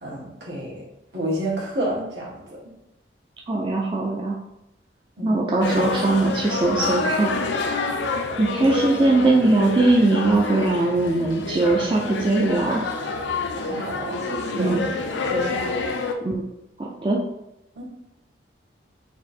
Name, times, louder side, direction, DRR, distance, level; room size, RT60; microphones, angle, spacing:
voice 1, 0.0-0.8 1.1-2.4 5.2-5.4 13.5-14.9 15.3-15.8 17.7-17.8, right 1 dB, 75° right, -5 dB, 1.6 m, -30 dB
voice 2, 3.5-4.4 5.2-7.5 8.4-12.8 14.5-14.8 16.2-16.4 16.8-17.2, right 2 dB, 30° right, -2 dB, 0.4 m, -20 dB
sound 1, 5.6-16.1, left 3 dB, 85° left, 0.5 m, -28 dB
4.2 x 2.6 x 4.2 m, 0.87 s
head